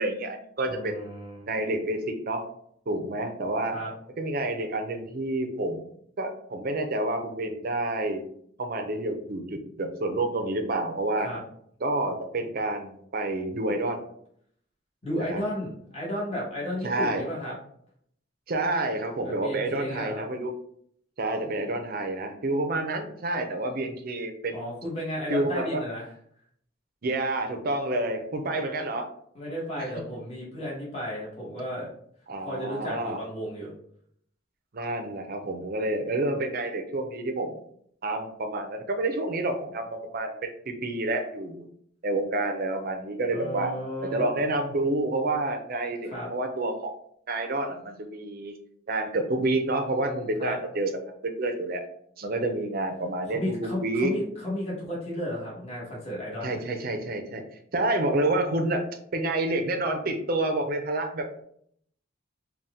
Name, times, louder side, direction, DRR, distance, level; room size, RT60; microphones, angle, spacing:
voice 1, 0.0-1.0 1.5-2.4 2.9-3.8 4.2-5.9 6.2-8.2 8.6-11.3 11.8-14.0 15.3-15.4 16.8-17.2 18.5-20.5 21.2-24.6 25.3-25.8 27.0-29.1 29.8-29.9 32.3-33.2 34.7-37.6 38.0-41.7 42.0-43.7 44.0-46.9 47.3-48.5 48.9-50.9 51.2-51.8 52.2-54.1 56.4-57.4 57.7-58.9 59.1-61.4, right 2 dB, 50° right, 5 dB, 0.6 m, -29 dB
voice 2, 0.6-1.5 3.7-3.9 11.2-11.4 15.0-17.5 19.2-20.2 24.5-26.1 29.3-31.9 32.4-33.7 43.3-44.3 46.0-46.3 50.4-50.6 53.2-56.6, equal, 35° left, -5 dB, 1.3 m, -33 dB
4.1 x 2.3 x 3.5 m, 0.66 s
head